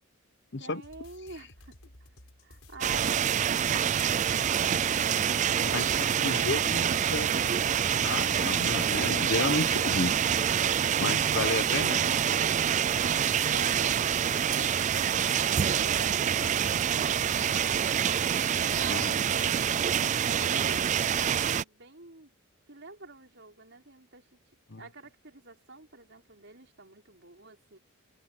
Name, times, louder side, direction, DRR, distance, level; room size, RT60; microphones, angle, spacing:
voice 1, 0.6-1.8 2.4-5.1 5.4-8.0 13.5-14.9 15.4-22.3 22.7-24.4 24.8-27.8, right 3 dB, 55° right, 5.6 m, -47 dB
sound 1, 0.8-15.2, left 1 dB, 80° left, 6.5 m, -54 dB
sound 2, 2.8-21.6, right 8 dB, 35° right, 0.3 m, -26 dB
voice 2, 6.2-7.3 8.0-10.1 11.0-12.0 18.9-19.1 24.7-24.8, left 2 dB, 50° left, 1.0 m, -31 dB
head